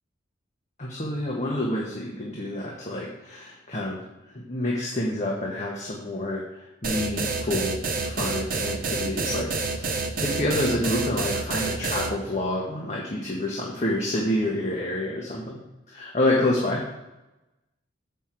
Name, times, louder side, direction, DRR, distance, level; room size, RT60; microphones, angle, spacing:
voice 1, 0.8-4.0 4.3-15.6 15.9-16.9, left 1 dB, 35° left, -3 dB, 1.1 m, -28 dB
sound 1, 6.8-12.1, right 3 dB, 45° right, 0.7 m, -28 dB
8.0 x 5.6 x 4.4 m, 0.98 s
head